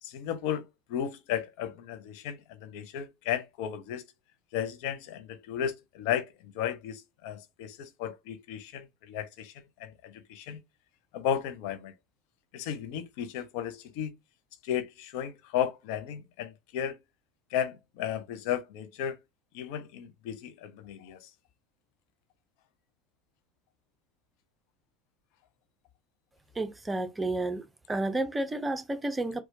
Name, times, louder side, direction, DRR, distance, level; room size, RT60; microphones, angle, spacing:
voice 1, 0.0-4.0 4.5-10.6 11.1-11.9 12.5-14.1 14.6-17.0 17.5-19.2 19.5-21.3, left 9 dB, 60° left, 0.5 m, -34 dB
voice 2, 26.6-29.4, right 2 dB, 15° right, 0.7 m, -31 dB
4.2 x 2.2 x 2.7 m
figure-of-eight pair, 70°, 0 cm